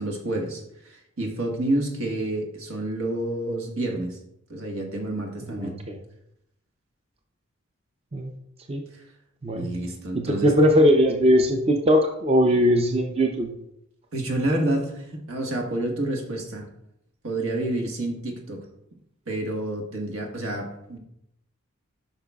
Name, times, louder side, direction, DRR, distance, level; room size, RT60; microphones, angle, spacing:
voice 1, 0.0-4.2 4.5-5.7 8.9-9.0 9.5-10.5 14.1-16.6 17.2-18.6 19.3-21.0, right 1 dB, 80° right, 1 dB, 1.5 m, -29 dB
voice 2, 5.5-6.0 8.1-8.3 8.7-8.8 9.4-9.7 10.1-13.5, equal, 30° right, 3 dB, 0.6 m, -20 dB
11.5 x 5.7 x 2.3 m, 0.79 s
head